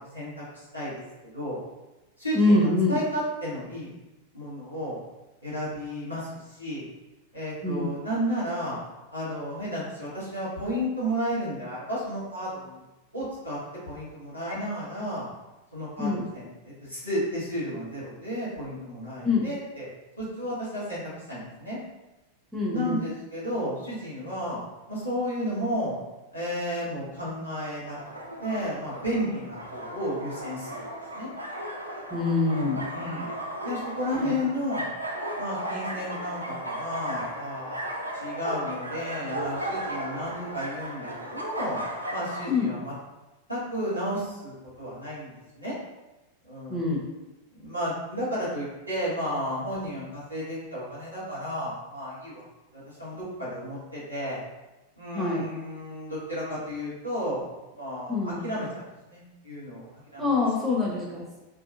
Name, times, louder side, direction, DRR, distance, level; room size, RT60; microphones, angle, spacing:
voice 1, 0.0-1.6 2.2-3.9 4.3-5.0 5.4-6.8 7.3-8.8 9.1-12.8 13.1-13.6 13.9-15.3 15.7-19.9 20.2-21.0 21.3-21.8 22.7-24.6 24.9-25.9 26.3-28.0 28.4-30.8 31.1-31.3 32.9-33.3 33.6-34.9 35.4-41.8 42.1-42.9 43.5-45.7 46.4-46.9 47.5-52.4 52.7-54.4 55.0-57.5 57.7-59.8 60.1-60.3 60.7-60.8, equal, 90° left, -10 dB, 1.4 m, -32 dB
voice 2, 2.4-3.0 7.6-7.9 16.0-16.2 19.2-19.5 22.5-23.0 32.1-32.8 34.2-34.3 42.5-42.7 46.7-47.0 55.1-55.4 58.1-58.4 60.2-61.2, left 3 dB, 15° right, -3 dB, 0.8 m, -24 dB
sound 1, 27.8-42.5, right 1 dB, 80° right, 0.4 m, -35 dB
2.9 x 2.7 x 2.6 m, 1.0 s
figure-of-eight pair, 90°, 0 cm